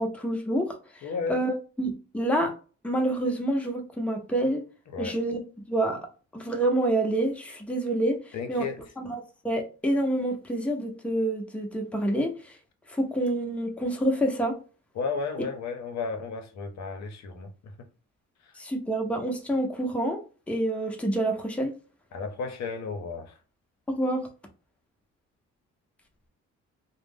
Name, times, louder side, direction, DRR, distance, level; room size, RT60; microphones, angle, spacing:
voice 1, 0.0-2.5 2.8-4.6 5.0-5.4 5.7-6.0 6.3-8.7 9.0-12.6 12.9-14.6 18.6-20.2 20.5-21.7 23.9-24.3, right 1 dB, 5° left, 0.7 m, -27 dB
voice 2, 1.0-1.4 4.9-5.2 8.3-8.8 15.0-17.7 18.4-18.6 22.1-23.4, left 4 dB, 65° left, 0.7 m, -33 dB
2.5 x 2.1 x 3.4 m
cardioid pair, 90°, 30 cm